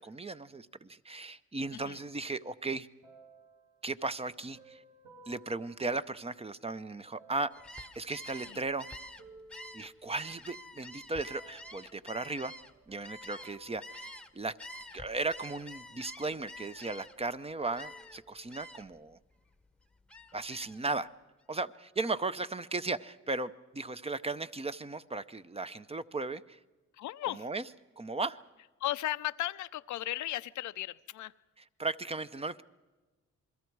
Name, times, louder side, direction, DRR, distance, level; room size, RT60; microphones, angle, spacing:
voice 1, 0.0-2.9 3.8-4.8 5.3-7.5 8.0-8.9 9.7-12.5 12.9-14.6 14.9-19.2 20.3-21.1 21.5-26.6 27.2-27.6 28.0-28.4 31.8-32.6, right 3 dB, 20° right, 12 dB, 0.7 m, -36 dB
sound 1, 3.0-6.6 7.1-10.7 11.3-12.0 12.6-14.9 15.4-16.4 16.7-18.7 19.4-19.5, right 2 dB, 70° right, 7.0 m, -59 dB
Gull seagull, 7.5-14.3 14.6-17.3 17.7-18.2 18.5-19.0 19.4-20.8, left 1 dB, 5° left, 1.0 m, -48 dB
voice 2, 27.0-27.5 28.8-31.3, left 14 dB, 75° left, 13 dB, 0.6 m, -35 dB
28.5 x 22.0 x 4.7 m, 1.2 s
cardioid pair, 90°, 30 cm